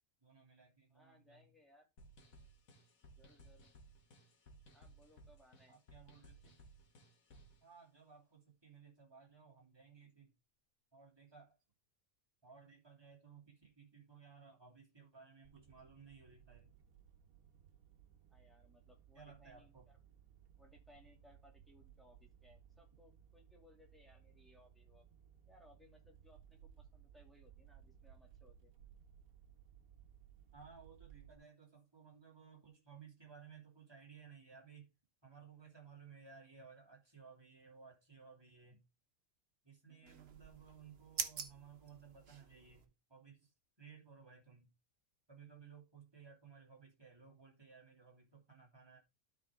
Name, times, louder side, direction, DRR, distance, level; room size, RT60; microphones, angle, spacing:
voice 1, 0.2-1.5 5.7-6.6 7.6-10.3 10.9-11.6 12.4-16.7 19.1-19.9 30.5-34.9 35.2-38.8 39.6-42.8 43.1-43.5 43.8-44.7 45.3-49.0, right 6 dB, 15° right, 2.8 m, -59 dB
voice 2, 0.9-1.9 3.1-3.7 4.7-5.8 18.3-20.0 20.6-25.0 25.4-28.7 39.9-40.3, left 1 dB, ahead, 2.4 m, -66 dB
sound 1, 2.0-7.6, right 1 dB, 75° left, 2.0 m, -61 dB
sound 2, 15.4-31.4, right 9 dB, 80° right, 1.5 m, -62 dB
sound 3, 40.1-42.9, right 6 dB, 50° right, 1.1 m, -46 dB
12.5 x 4.8 x 3.6 m
omnidirectional pair, 1.5 m